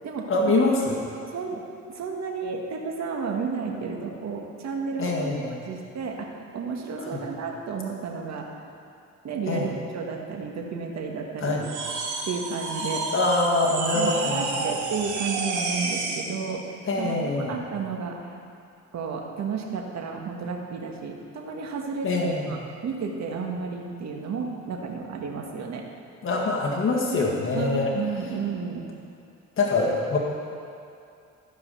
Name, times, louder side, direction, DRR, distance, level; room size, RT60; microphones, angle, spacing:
voice 1, 0.3-1.0 5.0-5.5 7.0-7.2 9.5-9.7 11.4-11.6 13.1-14.5 16.9-17.6 22.0-22.6 26.2-27.9 29.6-30.2, left 2 dB, 45° left, -2 dB, 1.6 m, -24 dB
voice 2, 1.3-1.6 1.9-5.4 5.7-8.5 9.2-11.6 12.3-13.1 13.9-17.1 17.5-18.2 18.9-22.6 22.8-25.8 27.1-28.9, right 5 dB, 60° right, 1 dB, 1.6 m, -32 dB
sound 1, 11.6-16.3, right 3 dB, 80° right, 1.8 m, -30 dB
13.5 x 5.5 x 6.8 m, 2.5 s
cardioid pair, 90°, 30 cm